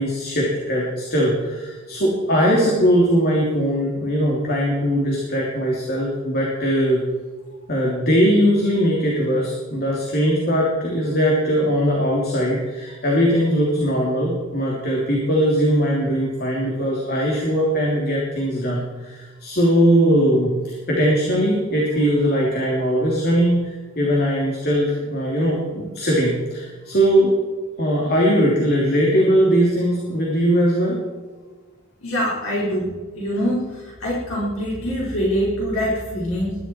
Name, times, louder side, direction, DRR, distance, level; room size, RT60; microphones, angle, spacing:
voice 1, 0.0-7.0 7.7-27.3 27.8-31.0, equal, 45° left, -3 dB, 3.2 m, -20 dB
voice 2, 32.0-32.9 33.1-36.6, equal, 65° left, -5 dB, 4.8 m, -24 dB
20.5 x 12.0 x 4.6 m, 1.3 s
head